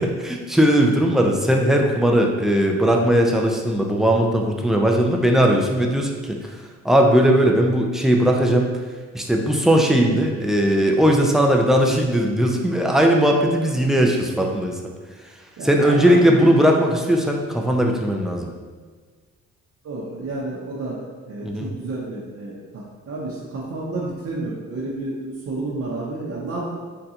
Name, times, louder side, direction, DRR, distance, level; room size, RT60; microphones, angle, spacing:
voice 1, 0.0-6.5 6.8-8.7 9.1-14.8 15.6-18.5 21.4-21.7, equal, ahead, 1 dB, 0.3 m, -18 dB
voice 2, 15.6-16.5 19.8-26.7, right 2 dB, 50° right, -5 dB, 0.6 m, -30 dB
3.7 x 2.2 x 2.7 m, 1.5 s
cardioid pair, 90°, 30 cm